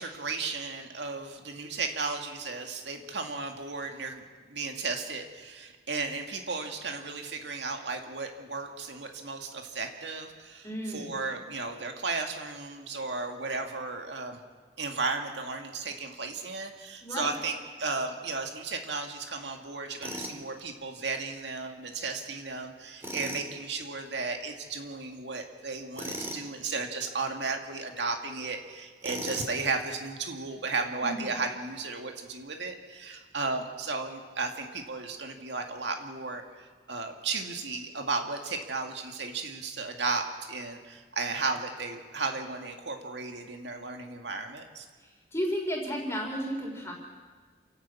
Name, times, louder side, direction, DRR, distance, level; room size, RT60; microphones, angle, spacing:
voice 1, 0.0-4.2 4.5-14.4 14.8-44.9, right 4 dB, 80° right, 4 dB, 2.1 m, -34 dB
voice 2, 10.6-11.1 17.0-17.3 31.0-31.3 45.0-46.9, equal, 15° left, -1 dB, 3.7 m, -33 dB
Tools, 20.0-20.4 23.0-23.5 25.9-26.4 29.0-29.6, equal, 15° right, 2.7 m, -37 dB
28.5 x 11.5 x 8.4 m, 1.5 s
head